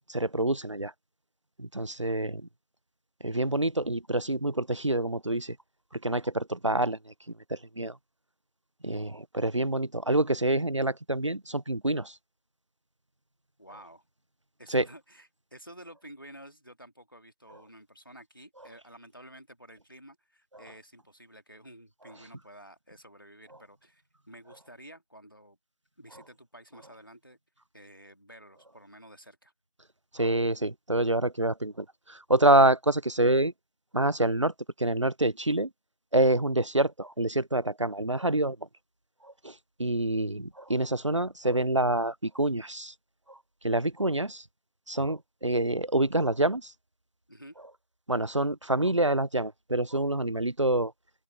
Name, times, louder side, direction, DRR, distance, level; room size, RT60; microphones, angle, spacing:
voice 1, 0.1-0.9 1.6-2.4 3.2-5.6 5.9-7.1 7.5-8.0 8.8-12.1 14.7-14.9 30.1-33.5 33.9-34.5 34.8-35.7 36.1-38.6 39.2-39.5 39.8-42.9 43.3-43.4 43.6-44.4 44.9-46.7 48.1-50.9, right 1 dB, 55° right, 0.5 m, -27 dB
voice 2, 13.6-14.0 14.6-25.6 26.0-27.4 27.7-29.5 47.3-47.6, equal, 35° left, 2.0 m, -51 dB
open air
figure-of-eight pair, 180°, 19 cm